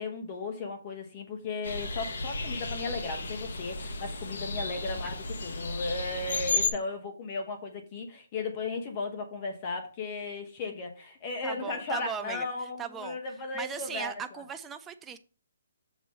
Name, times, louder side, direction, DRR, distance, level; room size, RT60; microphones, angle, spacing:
voice 1, 0.0-14.4, left 3 dB, 20° left, 4 dB, 1.0 m, -36 dB
sound 1, 1.6-6.7, left 3 dB, 55° left, 0.9 m, -33 dB
voice 2, 11.4-12.5 12.8-13.2 13.5-15.2, right 7 dB, 5° right, 8 dB, 0.3 m, -38 dB
7.8 x 3.1 x 5.3 m, 0.37 s
hypercardioid pair, 180°, 0 cm